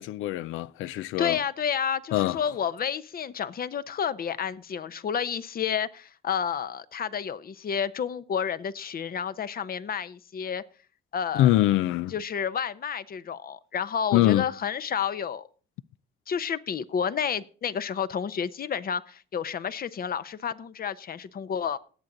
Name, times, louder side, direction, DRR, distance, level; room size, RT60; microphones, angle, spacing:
voice 1, 0.0-1.4 2.1-2.4 11.3-12.1 14.1-14.5, left 15 dB, 90° left, 0.4 m, -23 dB
voice 2, 1.2-10.6 11.1-11.5 12.1-15.5 16.3-21.8, left 7 dB, 50° left, 0.8 m, -30 dB
18.5 x 7.4 x 3.9 m
cardioid pair, 90°, 20 cm